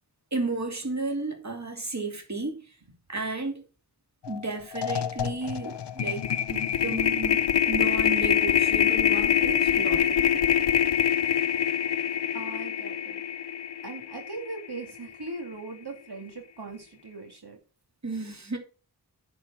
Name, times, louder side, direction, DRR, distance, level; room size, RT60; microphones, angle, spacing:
voice 1, 0.3-2.7 3.1-3.6 4.3-7.4 7.7-10.5 18.0-18.6, right 3 dB, 45° right, 2.8 m, -33 dB
sound 1, 4.2-4.4 4.7-15.0, left 9 dB, 85° left, 0.6 m, -25 dB
voice 2, 12.3-13.2 13.8-17.6, right 3 dB, 70° right, 2.3 m, -39 dB
9.9 x 4.6 x 7.3 m
wide cardioid pair, 60°, 40 cm